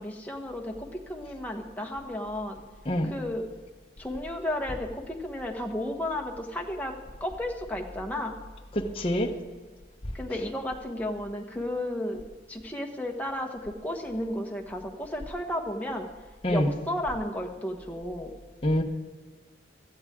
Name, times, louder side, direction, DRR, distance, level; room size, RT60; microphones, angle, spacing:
voice 1, 0.0-2.6 3.0-3.5 4.0-6.9 7.2-8.4 10.1-12.2 12.5-16.0 16.5-18.3, left 1 dB, 10° left, 1 dB, 1.2 m, -33 dB
voice 2, 8.9-9.3 16.4-16.7 18.6-18.8, left 1 dB, 30° left, 2 dB, 0.9 m, -25 dB
17.0 x 13.0 x 3.7 m, 1.3 s
head